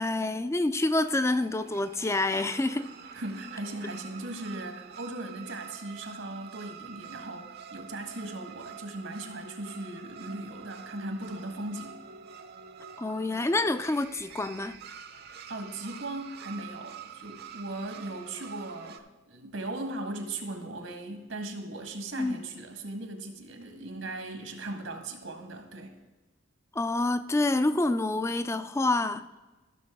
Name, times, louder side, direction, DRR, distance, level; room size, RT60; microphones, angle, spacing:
voice 1, 0.0-2.9 13.0-14.8 22.2-22.4 26.7-29.3, left 2 dB, 15° left, 0.4 m, -27 dB
sound 1, 0.7-19.0, right 7 dB, 55° right, 0.7 m, -47 dB
voice 2, 3.1-12.0 15.5-25.9, right 2 dB, 85° right, 1.5 m, -38 dB
14.0 x 6.6 x 3.6 m
head